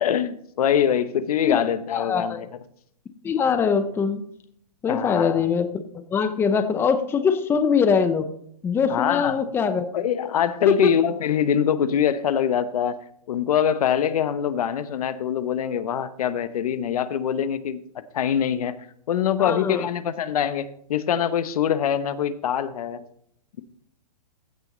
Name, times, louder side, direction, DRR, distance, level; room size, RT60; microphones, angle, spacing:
voice 1, 0.0-2.5 4.9-5.4 8.9-9.4 9.9-13.0 13.3-17.8 18.1-18.7 19.1-23.0, left 9 dB, 70° left, 1.0 m, -24 dB
voice 2, 1.9-2.4 3.2-4.2 4.8-5.7 6.1-8.3 8.6-9.9 10.7-10.9 19.4-19.8, left 6 dB, 10° left, 0.7 m, -22 dB
15.0 x 6.0 x 3.9 m
hypercardioid pair, 145°, 20 cm